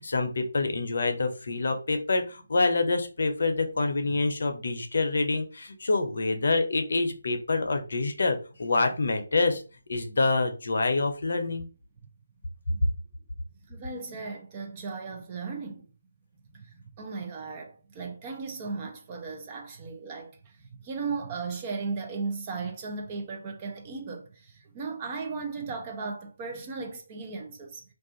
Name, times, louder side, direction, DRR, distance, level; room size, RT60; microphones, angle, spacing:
voice 1, 0.0-9.6 9.9-11.7, left 3 dB, 60° left, 0.6 m, -26 dB
voice 2, 13.7-15.9 16.5-27.8, right 4 dB, 25° right, 0.6 m, -36 dB
2.4 x 2.4 x 3.7 m
figure-of-eight pair, 160°, 0 cm